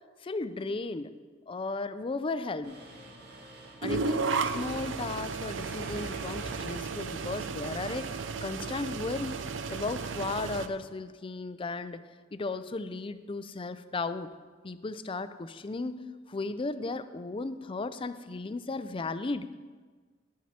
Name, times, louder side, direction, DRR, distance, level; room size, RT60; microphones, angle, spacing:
voice 1, 0.2-1.1 1.5-2.7 3.8-8.1 8.4-9.4 9.7-12.0 12.3-14.3 14.6-19.5, left 3 dB, 30° left, 12 dB, 0.4 m, -35 dB
Mechanisms, 2.6-8.5, right 1 dB, 60° right, 1.9 m, -49 dB
sound 1, 3.8-10.7, right 4 dB, 80° right, 0.6 m, -34 dB
11.5 x 9.3 x 4.3 m, 1.4 s
head